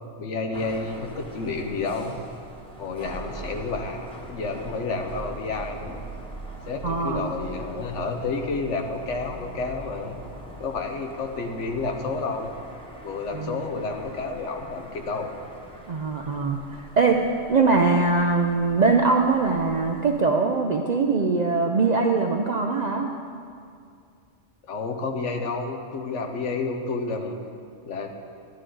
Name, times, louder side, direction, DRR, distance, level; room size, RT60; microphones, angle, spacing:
voice 1, 0.2-2.2 2.8-6.0 6.7-10.2 10.6-12.5 13.0-15.3 24.7-27.4 27.8-28.1, left 3 dB, 70° left, 4 dB, 1.2 m, -30 dB
sound 1, 0.5-20.2, right 1 dB, 5° left, 1.0 m, -42 dB
voice 2, 6.8-7.3 13.3-13.6 15.9-17.2 17.5-23.1, right 4 dB, 55° right, 3 dB, 0.5 m, -22 dB
11.5 x 11.0 x 3.8 m, 2.4 s
omnidirectional pair, 1.3 m